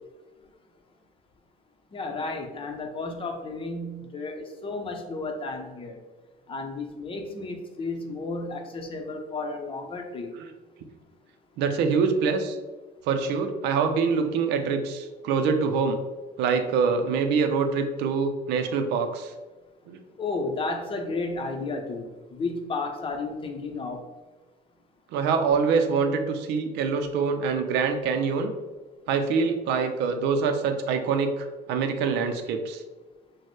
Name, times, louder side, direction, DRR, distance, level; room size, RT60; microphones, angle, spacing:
voice 1, 1.9-6.0 6.5-10.3 20.2-24.0, left 3 dB, 30° left, 4 dB, 0.7 m, -33 dB
voice 2, 11.6-12.6 13.1-16.0 16.4-19.3 19.9-20.0 25.1-28.5 29.1-32.8, right 5 dB, 85° right, 6 dB, 0.5 m, -25 dB
6.2 x 2.1 x 3.1 m, 1.2 s
cardioid pair, 110°, 17 cm